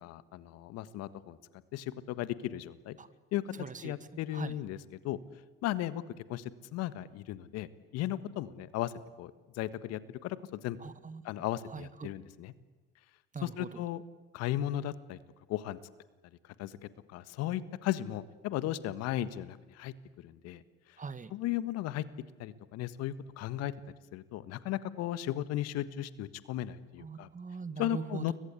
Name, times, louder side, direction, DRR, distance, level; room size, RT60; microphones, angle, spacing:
voice 1, 0.0-1.4 1.7-3.0 3.3-3.5 3.8-4.8 5.0-5.2 5.6-6.0 6.3-7.7 7.9-8.9 9.2-10.8 11.2-12.5 13.4-14.0 14.3-15.2 15.5-15.8 16.6-16.8 17.1-20.6 21.3-22.0 22.4-23.7 24.1-27.3 27.8-28.3, left 13 dB, 60° left, 15 dB, 1.6 m, -36 dB
voice 2, 3.6-3.9 4.3-4.5 10.8-11.2 11.7-12.1 13.3-13.8 21.0-21.3 27.0-28.3, right 5 dB, 25° right, 13 dB, 1.9 m, -41 dB
30.0 x 23.0 x 8.4 m, 1.3 s
hypercardioid pair, 60°, 29 cm